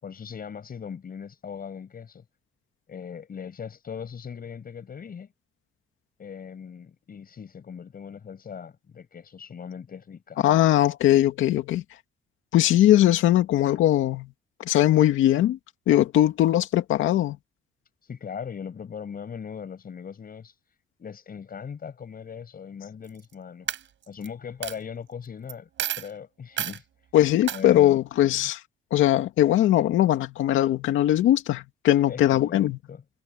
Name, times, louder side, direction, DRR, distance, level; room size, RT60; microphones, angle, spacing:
voice 1, 0.0-2.2 2.9-5.3 6.2-10.4 18.0-20.5 21.0-23.7 24.1-25.7 26.0-26.8 27.5-28.0 32.1-33.0, left 7 dB, 50° left, 6.4 m, -39 dB
voice 2, 10.4-11.8 12.5-14.3 14.6-15.6 15.9-17.4 27.1-28.6 28.9-32.8, left 13 dB, 85° left, 2.3 m, -20 dB
Coin (dropping), 23.0-23.3 23.7-24.3 24.6-24.8 25.5-25.6 25.8-26.1 26.6-26.8 27.5-27.6, right 11 dB, 70° right, 7.4 m, -30 dB
cardioid pair, 90°, 20 cm